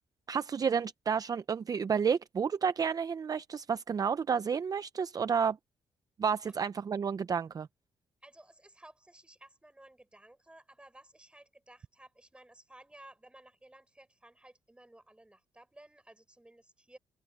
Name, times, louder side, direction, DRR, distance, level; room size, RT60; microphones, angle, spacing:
voice 1, 0.3-5.6 6.2-7.7, right 6 dB, 40° right, 0.6 m, -30 dB
voice 2, 8.2-17.0, right 1 dB, 10° right, 6.9 m, -56 dB
cardioid pair, 80°, 9 cm